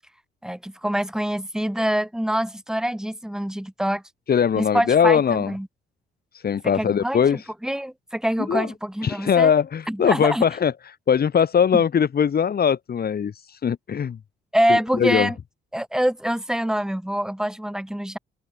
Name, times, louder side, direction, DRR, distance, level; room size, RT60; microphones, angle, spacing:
voice 1, 0.4-4.0 4.6-5.7 6.7-9.5 9.9-10.4 11.7-11.8 14.5-15.4 15.7-18.2, equal, 5° right, 4.3 m, -25 dB
voice 2, 4.3-5.5 6.3-7.4 8.5-8.7 9.0-10.7 11.1-14.2 14.7-15.3, left 7 dB, 50° left, 5.6 m, -20 dB
cardioid pair, 90°, 20 cm